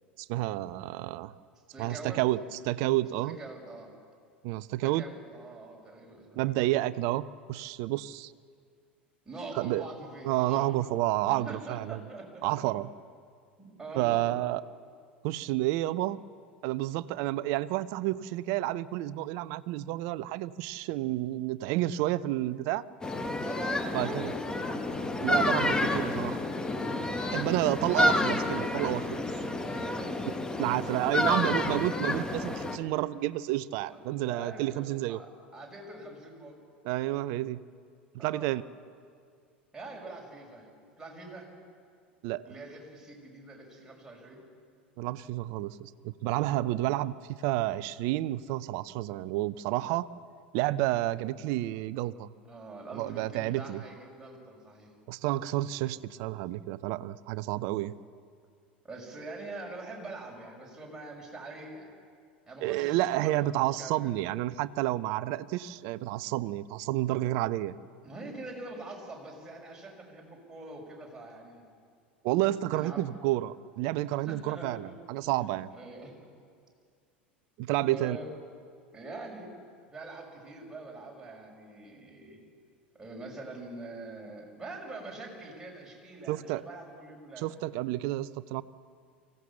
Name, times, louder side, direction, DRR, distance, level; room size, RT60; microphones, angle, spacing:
voice 1, 0.2-1.3 1.8-2.4 2.6-3.4 4.4-5.0 6.4-8.3 9.5-9.8 10.2-12.0 12.4-12.9 13.9-14.6 15.2-16.2 16.6-22.8 23.9-24.3 25.2-26.4 27.3-29.3 30.6-35.2 36.8-37.6 38.1-38.6 42.2-42.5 45.0-50.1 50.5-52.3 52.9-53.8 55.1-57.9 62.6-67.7 72.2-75.7 77.6-78.2 86.3-86.6 87.4-88.6, right 16 dB, 55° right, 17 dB, 0.6 m, -30 dB
voice 2, 1.7-2.2 3.2-3.9 4.8-6.7 9.2-10.8 11.3-12.5 13.6-14.3 23.4-24.8 26.9-27.9 29.6-31.4 33.8-36.6 38.2-38.5 39.7-40.7 41.0-41.5 42.4-44.4 52.4-54.9 58.8-61.9 62.5-63.5 63.8-64.3 68.0-71.6 72.7-73.0 74.1-74.9 75.7-76.2 77.8-78.3 78.9-79.5 79.9-82.4 83.0-87.5, right 2 dB, 10° right, -2 dB, 6.0 m, -44 dB
sound 1, 23.0-32.8, left 2 dB, 10° left, 1.7 m, -30 dB
24.0 x 16.0 x 7.2 m, 2.1 s
figure-of-eight pair, 80°, 6 cm